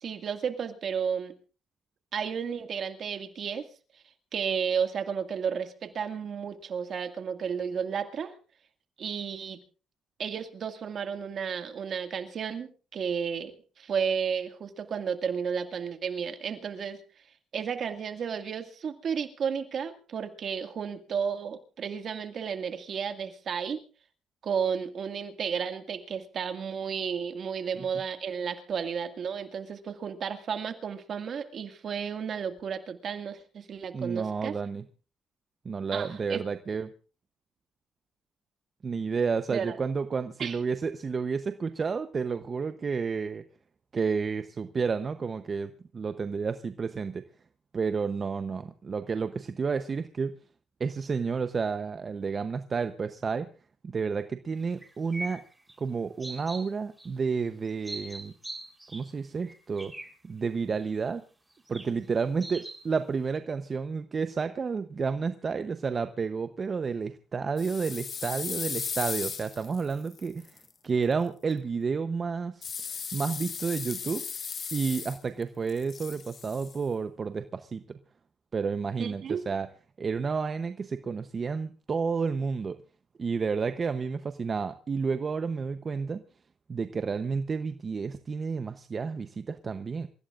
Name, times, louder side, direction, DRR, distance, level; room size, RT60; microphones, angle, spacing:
voice 1, 0.0-1.4 2.1-3.7 4.3-8.3 9.0-9.6 10.2-17.0 17.5-23.8 24.4-34.6 35.9-36.4 39.5-39.8 40.4-40.6 79.0-79.4, right 7 dB, 60° right, 7 dB, 2.0 m, -32 dB
voice 2, 33.9-34.8 35.6-36.9 38.8-43.4 43.9-47.2 47.7-50.3 50.8-53.5 53.8-55.4 55.8-58.3 58.9-59.9 60.2-61.2 61.7-72.7 73.1-74.3 74.7-78.0 78.5-79.7 80.0-82.8 83.2-86.2 86.7-90.1, right 5 dB, 40° right, 10 dB, 0.8 m, -31 dB
sound 1, 54.8-55.7 56.2-56.6 57.0-57.1 57.7-59.1 59.4-60.1 60.8-60.9 61.7-61.8 62.4-62.8, right 2 dB, 10° right, 3.7 m, -40 dB
sound 2, 67.6-70.6 72.6-75.4 75.7-76.8, left 6 dB, 50° left, 1.7 m, -36 dB
27.5 x 15.5 x 2.5 m, 0.36 s
cardioid pair, 90°, 0 cm